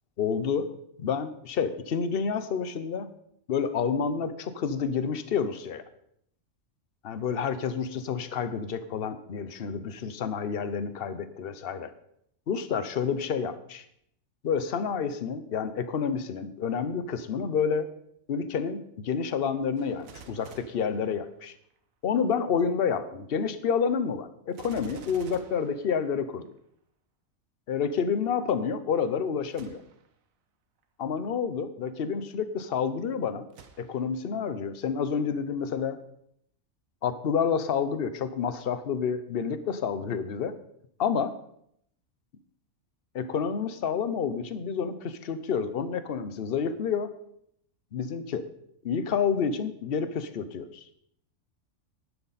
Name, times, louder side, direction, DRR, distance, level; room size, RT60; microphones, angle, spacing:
voice 1, 0.2-0.7 1.0-3.1 3.5-5.8 7.0-11.9 12.5-13.8 14.4-17.9 18.3-21.5 22.0-26.5 27.7-29.8 31.0-33.5 33.8-36.0 37.0-40.6 41.0-41.3 43.1-47.1 47.9-48.5 48.8-50.8, left 6 dB, 50° left, 12 dB, 0.9 m, -29 dB
Gunshot gunfire, 19.8-21.8 24.5-26.6 29.5-30.2 30.8-30.9 33.5-34.3 34.8-34.9, right 6 dB, 90° right, 1.4 m, -51 dB
11.5 x 10.5 x 4.1 m, 0.72 s
omnidirectional pair, 1.4 m